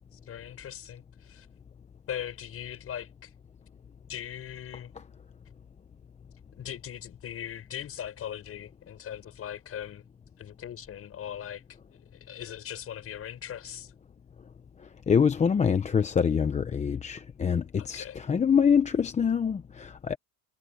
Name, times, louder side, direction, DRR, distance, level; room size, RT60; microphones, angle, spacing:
voice 1, 0.1-1.5 2.1-3.3 4.1-4.9 6.6-10.0 10.4-11.6 11.9-13.9 17.8-18.2, left 10 dB, 35° left, 7.0 m, -40 dB
voice 2, 15.1-20.2, left 7 dB, 15° left, 0.9 m, -25 dB
supercardioid pair, 140°, 41 cm